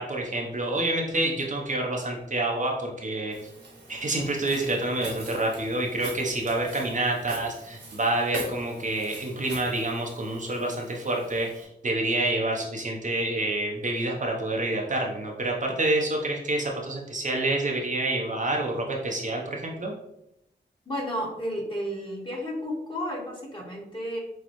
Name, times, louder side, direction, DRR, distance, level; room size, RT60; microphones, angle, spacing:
voice 1, 0.0-3.5 3.9-19.9, right 2 dB, 45° right, 0 dB, 0.8 m, -28 dB
Walk footsteps, 3.3-11.6, right 2 dB, 70° right, 1.4 m, -42 dB
voice 2, 20.8-24.2, equal, 25° left, -3 dB, 1.7 m, -32 dB
6.2 x 2.3 x 3.0 m, 0.81 s
cardioid pair, 55°, 18 cm